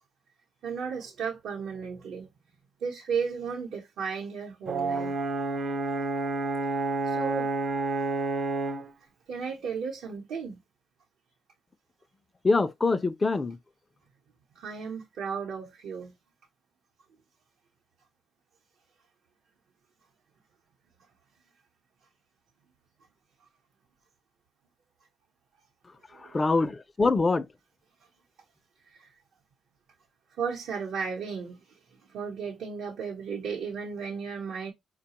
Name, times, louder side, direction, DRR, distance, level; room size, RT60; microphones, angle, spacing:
voice 1, 0.6-2.3 2.8-5.2 7.0-7.5 9.3-10.6 14.5-16.1 26.1-26.6 28.9-29.1 30.4-34.7, right 6 dB, 75° right, 0.9 m, -34 dB
Brass instrument, 4.7-8.9, right 3 dB, 55° right, 0.5 m, -29 dB
voice 2, 12.4-13.6 26.3-27.5, left 3 dB, 25° left, 0.4 m, -24 dB
4.7 x 2.2 x 2.9 m
cardioid pair, 90°, 0 cm